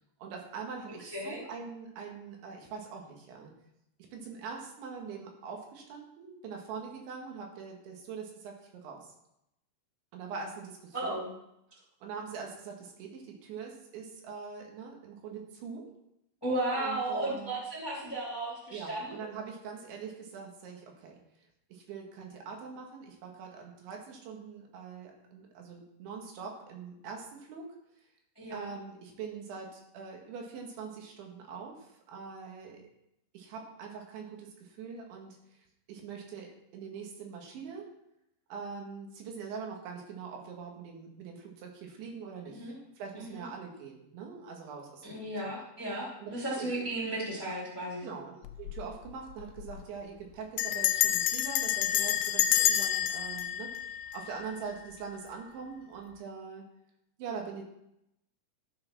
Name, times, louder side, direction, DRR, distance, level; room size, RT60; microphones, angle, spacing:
voice 1, 0.2-3.5 4.1-9.1 10.1-11.2 11.7-15.9 16.7-17.5 18.7-21.2 21.7-27.7 28.5-32.8 33.3-35.4 35.9-37.9 38.5-45.5 46.2-46.3 46.6-46.7 48.0-56.6 57.2-57.6, right 5 dB, 85° right, 1 dB, 4.2 m, -43 dB
voice 2, 1.0-1.4 10.9-11.3 16.4-19.3 28.4-28.7 42.5-42.8 43.1-43.4 45.0-48.1, right 1 dB, 5° left, -5 dB, 1.9 m, -35 dB
Bell, 48.5-48.8 49.1-49.2 49.4-49.8 50.6-54.7, left 13 dB, 85° left, 3.0 m, -28 dB
12.5 x 7.0 x 6.1 m, 0.82 s
omnidirectional pair, 5.2 m